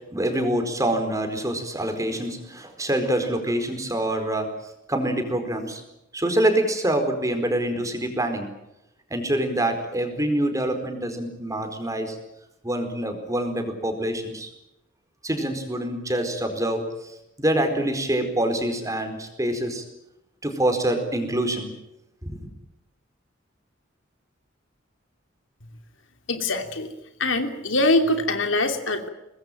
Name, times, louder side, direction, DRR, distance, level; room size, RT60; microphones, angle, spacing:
voice 1, 0.1-4.5 4.9-5.8 6.1-8.5 9.1-12.2 12.6-14.5 15.2-19.8 20.4-21.7 22.2-22.3, right 1 dB, 20° right, 6 dB, 4.6 m, -25 dB
voice 2, 26.3-26.9 27.2-29.1, left 2 dB, 85° left, 6 dB, 3.0 m, -23 dB
24.5 x 20.0 x 9.2 m, 0.86 s
head